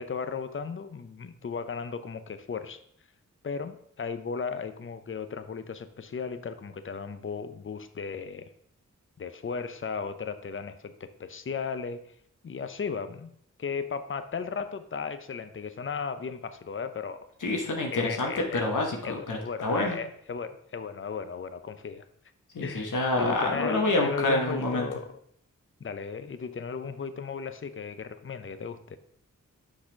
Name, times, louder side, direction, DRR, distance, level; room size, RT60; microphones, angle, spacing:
voice 1, 0.0-2.8 3.4-8.5 9.2-12.1 12.4-13.3 13.6-17.2 17.9-18.7 19.0-22.0 22.6-25.1 25.8-29.0, left 5 dB, 40° left, 10 dB, 0.6 m, -36 dB
voice 2, 17.4-20.0 22.5-24.9, left 2 dB, 70° left, 1 dB, 1.2 m, -27 dB
6.1 x 4.1 x 5.1 m, 0.67 s
cardioid pair, 50°, 32 cm